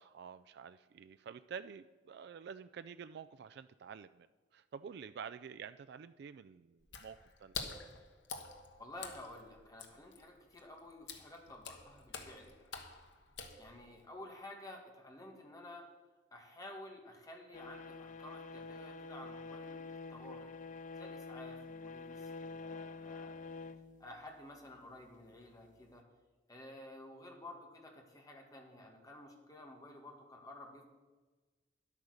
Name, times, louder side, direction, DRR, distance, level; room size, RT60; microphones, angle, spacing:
voice 1, 0.0-4.3 4.5-7.8, right 7 dB, 60° right, 12 dB, 0.3 m, -49 dB
Water / Splash splatter, 6.8-14.1, left 5 dB, 70° left, 1.3 m, -48 dB
voice 2, 8.8-12.6 13.6-15.8 16.3-20.5 21.0-23.7 24.0-26.0 26.5-30.8, left 1 dB, 20° left, 1 dB, 1.9 m, -52 dB
sound 1, 17.5-24.7 25.8-25.9, left 3 dB, 45° left, 0.4 m, -47 dB
11.0 x 8.5 x 6.5 m, 1.3 s
head